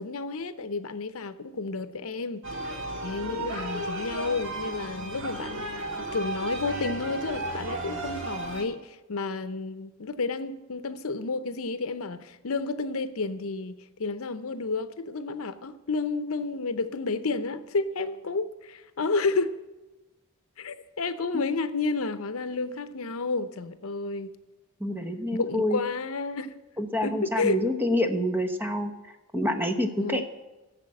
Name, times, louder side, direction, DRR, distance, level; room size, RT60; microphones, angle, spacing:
voice 1, 0.0-2.4 3.0-19.5 20.6-24.4 25.3-26.5 27.0-27.6 30.0-30.2, left 3 dB, 75° left, 0.7 m, -31 dB
sound 1, 2.4-8.6, right 2 dB, 65° right, 1.9 m, -34 dB
voice 2, 24.8-25.8 26.8-28.9 29.3-30.2, equal, 10° right, 1.0 m, -27 dB
14.0 x 6.7 x 7.6 m
head